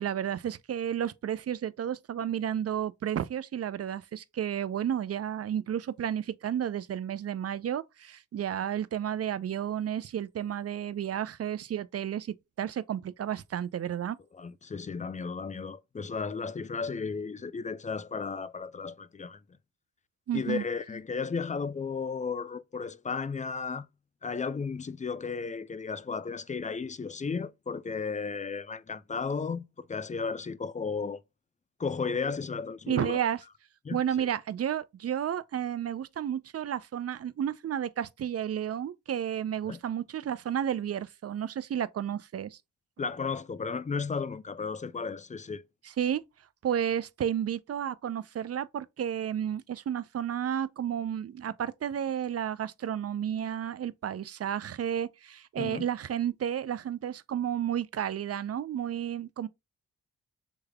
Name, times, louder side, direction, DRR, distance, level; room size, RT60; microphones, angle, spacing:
voice 1, 0.0-14.2 20.3-20.6 32.9-33.4 33.9-42.6 45.8-46.2 46.6-59.5, right 9 dB, 45° right, 0.4 m, -32 dB
voice 2, 14.3-19.4 20.3-23.9 24.2-31.2 31.8-33.2 33.8-34.3 39.7-39.8 43.0-45.6 55.6-55.8, left 5 dB, 20° left, 0.4 m, -34 dB
3.5 x 3.2 x 2.2 m
supercardioid pair, 40°, 35 cm